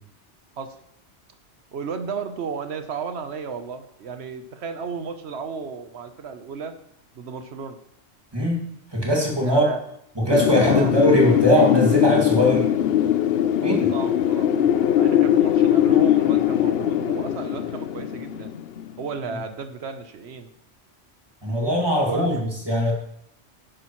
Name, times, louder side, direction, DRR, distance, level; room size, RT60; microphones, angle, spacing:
voice 1, 1.7-6.7 7.1-7.8 9.4-9.8 10.6-10.9 13.6-14.5 15.0-18.5 19.0-20.5 22.0-22.3, right 5 dB, 65° right, 8 dB, 1.2 m, -33 dB
voice 2, 8.3-8.7 8.9-9.7 10.2-12.7 13.6-13.9 21.4-22.9, equal, 20° right, -2 dB, 2.3 m, -20 dB
Wind, 10.3-19.0, left 10 dB, 60° left, 0.7 m, -20 dB
11.5 x 10.5 x 3.1 m, 0.74 s
omnidirectional pair, 1.2 m